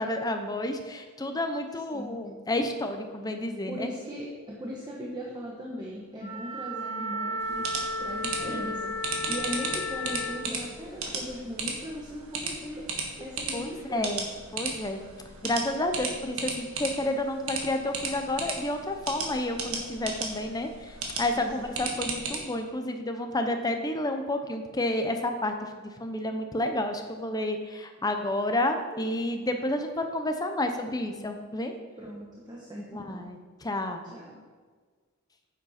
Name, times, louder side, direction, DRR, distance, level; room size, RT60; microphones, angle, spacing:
voice 1, 0.0-3.9 8.4-8.7 13.5-13.6 13.9-14.2 14.5-15.1 15.4-31.7 32.9-34.0, left 1 dB, 15° left, 5 dB, 0.7 m, -30 dB
voice 2, 1.9-2.2 3.7-7.7 8.0-12.9 13.2-14.2 21.4-22.0 32.0-33.3 34.0-34.4, equal, 20° right, -3 dB, 1.1 m, -39 dB
Wind instrument woodwind instrument, 6.2-10.5, left 1 dB, 35° left, 2.1 m, -33 dB
sound 1, 7.4-22.4, right 4 dB, 65° right, 1.5 m, -36 dB
9.7 x 7.6 x 4.3 m, 1.5 s
head